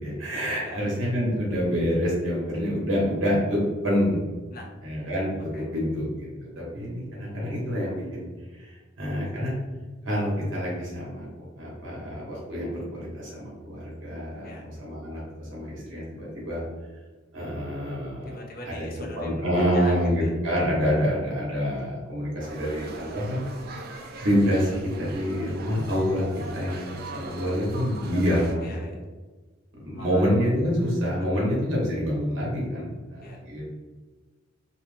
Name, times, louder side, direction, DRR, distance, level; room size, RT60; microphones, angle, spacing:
voice 1, 0.0-4.2 4.8-8.2 8.5-9.5 10.0-11.3 11.6-16.6 17.3-18.4 18.6-18.8 19.1-23.4 24.2-28.7 29.8-33.7, equal, 70° right, -5 dB, 0.9 m, -27 dB
voice 2, 0.6-1.0 4.5-4.7 5.5-5.7 14.4-14.8 18.3-20.3 28.6-29.0 29.9-30.3 31.3-31.5 33.2-33.4, left 1 dB, 45° left, 0 dB, 0.5 m, -41 dB
sound 1, 22.4-28.5, right 3 dB, 50° right, 0.3 m, -40 dB
2.8 x 2.0 x 3.1 m, 1.3 s
head